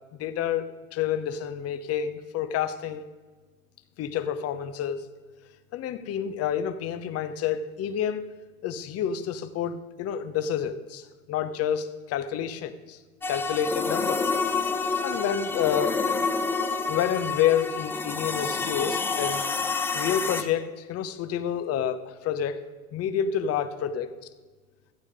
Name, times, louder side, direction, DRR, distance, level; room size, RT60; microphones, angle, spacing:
voice 1, 0.1-3.1 4.0-5.0 5.7-8.2 8.6-13.0 13.3-14.2 15.0-16.0 16.9-19.5 19.9-22.6 22.9-24.1, left 9 dB, 35° left, 11 dB, 1.0 m, -29 dB
sound 1, 13.2-20.4, left 4 dB, 5° left, 0.3 m, -28 dB
15.0 x 8.4 x 4.9 m, 1.3 s
hypercardioid pair, 100°, 43 cm